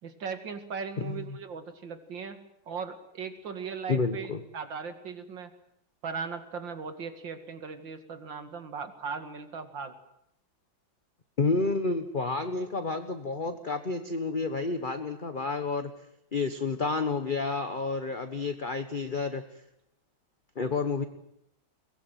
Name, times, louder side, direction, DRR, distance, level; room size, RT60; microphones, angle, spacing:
voice 1, 0.0-2.4 2.7-5.5 6.0-9.9, right 5 dB, 70° right, 9 dB, 2.8 m, -38 dB
voice 2, 1.0-1.4 3.9-4.4 11.4-15.9 16.3-19.4 20.5-21.0, left 4 dB, 30° left, 8 dB, 1.2 m, -30 dB
23.0 x 20.0 x 9.2 m, 0.78 s
omnidirectional pair, 2.1 m